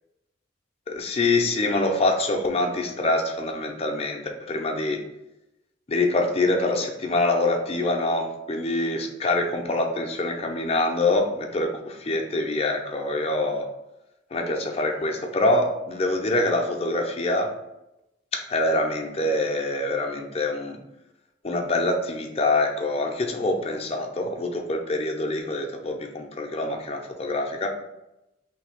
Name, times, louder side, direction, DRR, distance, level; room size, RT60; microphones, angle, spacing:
voice 1, 0.9-5.0 5.9-13.7 14.3-17.5 18.3-20.8 21.4-27.7, left 2 dB, 30° left, 3 dB, 0.5 m, -25 dB
3.2 x 2.7 x 4.4 m, 0.92 s
head